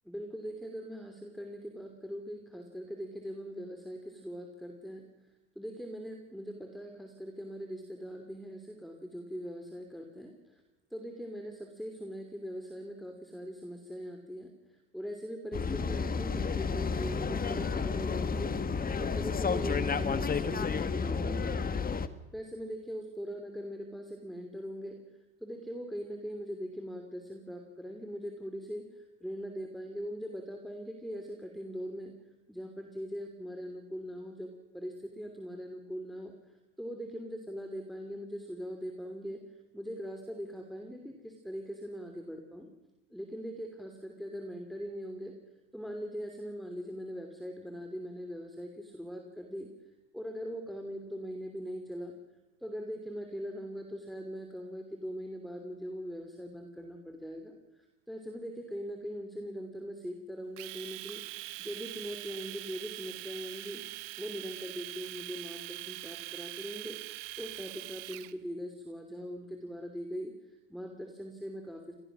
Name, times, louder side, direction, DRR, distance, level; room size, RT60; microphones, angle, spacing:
voice 1, 0.0-10.6 10.9-21.8 22.3-25.0 25.4-32.1 32.5-42.7 43.1-45.3 45.7-49.7 50.1-52.1 52.6-61.2 61.6-63.8 64.2-67.0 67.4-72.0, equal, ahead, 5 dB, 3.0 m, -41 dB
sound 1, 15.5-22.1, left 5 dB, 25° left, 1.5 m, -31 dB
Domestic sounds home sounds, 60.6-68.3, right 20 dB, 70° right, 1.2 m, -43 dB
26.0 x 19.0 x 6.2 m, 1.0 s
hypercardioid pair, 85°, 36 cm